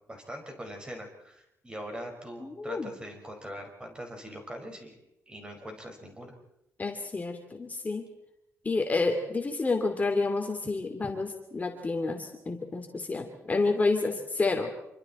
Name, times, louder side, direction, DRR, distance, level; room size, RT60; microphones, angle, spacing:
voice 1, 0.1-5.0 5.3-6.4, equal, 15° right, 3 dB, 5.3 m, -42 dB
voice 2, 2.4-2.9 6.8-8.1 8.6-14.7, left 3 dB, 30° left, 3 dB, 2.8 m, -29 dB
27.0 x 24.5 x 4.4 m, 0.83 s
cardioid pair, 105°, 5 cm